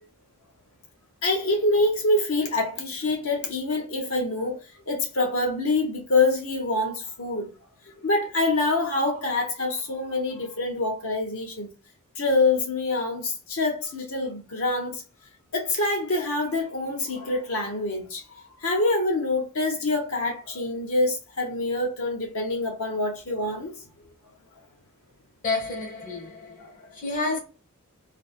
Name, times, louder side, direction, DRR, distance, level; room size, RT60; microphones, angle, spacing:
voice 1, 1.2-4.6 4.9-7.5 8.0-11.7 12.2-15.0 15.5-23.8 26.8-26.9, left 2 dB, 65° left, 0.9 m, -26 dB
voice 2, 25.4-27.4, left 3 dB, 35° left, 0.9 m, -30 dB
3.3 x 2.1 x 2.3 m
head